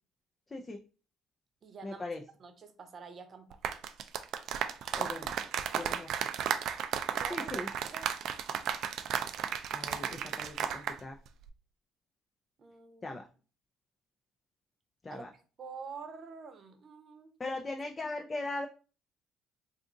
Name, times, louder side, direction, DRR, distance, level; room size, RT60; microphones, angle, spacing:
voice 1, 0.5-0.8 1.8-2.2 4.9-5.3 5.8-6.3 7.3-7.7 9.7-11.2 13.0-13.3 15.0-15.3 17.4-18.7, left 2 dB, 30° left, 3 dB, 0.4 m, -39 dB
voice 2, 1.6-2.0 2.4-3.6 7.1-8.1 12.6-13.2 15.1-17.3, right 5 dB, 50° right, 7 dB, 0.7 m, -47 dB
sound 1, 3.5-11.0 11.3-11.5, right 9 dB, 65° right, 0.3 m, -34 dB
2.6 x 2.4 x 3.7 m, 0.37 s
supercardioid pair, 65°, 0 cm